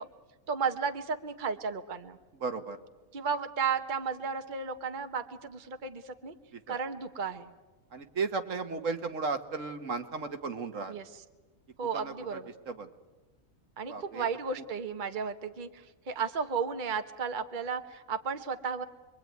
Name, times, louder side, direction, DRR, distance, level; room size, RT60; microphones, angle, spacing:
voice 1, 0.5-2.2 3.1-6.3 6.7-7.5 10.9-11.0 11.8-12.5 13.8-18.8, right 6 dB, 35° right, 7 dB, 1.2 m, -34 dB
voice 2, 2.4-2.8 6.5-6.8 7.9-11.0 11.9-12.4 12.7-12.9 13.9-14.3, right 4 dB, 65° right, 8 dB, 1.6 m, -35 dB
27.0 x 22.5 x 9.3 m, 1.2 s
omnidirectional pair, 1.4 m